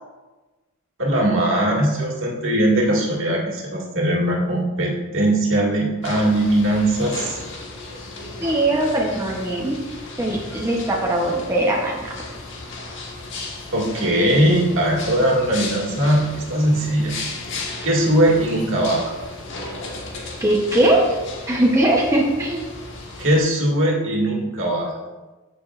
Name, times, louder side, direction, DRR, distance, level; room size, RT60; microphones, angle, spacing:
voice 1, 1.0-7.4 13.7-17.1 17.8-19.0 23.2-24.9, right 1 dB, 60° right, -2 dB, 1.9 m, -20 dB
sound 1, 6.0-23.4, left 3 dB, 55° left, 1.5 m, -35 dB
voice 2, 8.4-9.8 10.2-12.1 20.4-21.0 21.5-22.7, right 1 dB, 15° right, -3 dB, 0.8 m, -20 dB
14.0 x 6.0 x 2.5 m, 1.2 s
head